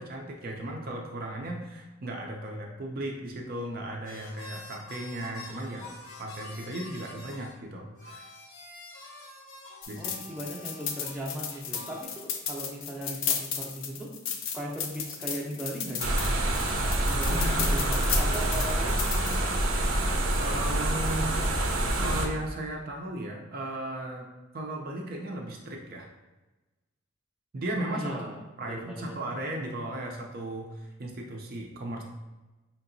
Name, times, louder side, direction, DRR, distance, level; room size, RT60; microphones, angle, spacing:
voice 1, 0.0-5.9 6.2-8.3 9.9-10.0 17.3-17.6 20.3-21.3 22.0-24.3 24.5-26.1 27.5-28.2 28.6-32.0, right 1 dB, 45° right, 0 dB, 0.5 m, -36 dB
sound 1, 4.0-7.6 7.9-12.0, left 2 dB, 90° left, 0.9 m, -47 dB
sound 2, 9.8-19.4, left 7 dB, 70° left, 0.5 m, -34 dB
voice 2, 10.0-14.1 14.5-16.2 17.0-19.6 27.9-29.4, equal, 5° right, -4 dB, 0.6 m, -38 dB
sound 3, 16.0-22.3, right 1 dB, 85° right, 0.6 m, -26 dB
5.0 x 2.8 x 2.6 m, 1.1 s
head